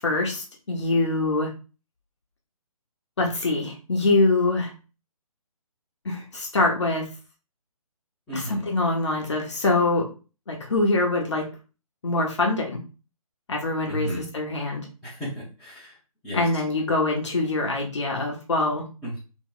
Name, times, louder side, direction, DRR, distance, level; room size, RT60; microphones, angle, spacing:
voice 1, 0.0-1.5 3.2-4.7 6.0-7.1 8.3-10.1 10.5-11.5 12.0-12.8 13.5-14.8 16.3-18.8, left 2 dB, 50° left, 0 dB, 0.8 m, -24 dB
voice 2, 8.3-8.6 13.9-14.2 15.0-15.9 16.2-16.4 19.0-19.2, equal, ahead, -13 dB, 0.6 m, -33 dB
2.9 x 2.1 x 3.7 m, 0.34 s
figure-of-eight pair, 140°, 19 cm